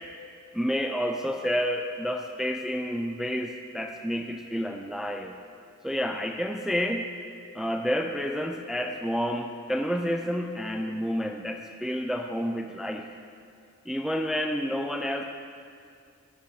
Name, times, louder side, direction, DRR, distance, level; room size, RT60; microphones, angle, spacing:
voice 1, 0.5-5.3 5.8-7.1 7.5-13.1 13.9-15.2, equal, ahead, 4 dB, 0.6 m, -29 dB
15.0 x 8.1 x 4.8 m, 2.3 s
cardioid pair, 60°, 30 cm